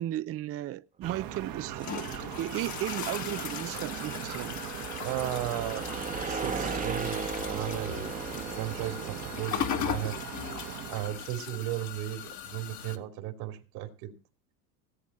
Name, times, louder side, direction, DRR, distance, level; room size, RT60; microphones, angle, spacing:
voice 1, 0.0-2.1 2.4-4.6, right 13 dB, 35° right, 0.5 m, -35 dB
sound 1, 1.0-11.3, right 12 dB, 55° right, 1.3 m, -40 dB
sound 2, 1.2-13.0, left 8 dB, 45° left, 1.5 m, -38 dB
sound 3, 3.2-9.8, right 5 dB, 20° right, 1.0 m, -38 dB
voice 2, 3.7-4.2 5.0-5.9 6.2-10.1 10.9-14.1, right 13 dB, 70° right, 2.8 m, -36 dB
18.0 x 8.2 x 4.2 m
supercardioid pair, 105°, 42 cm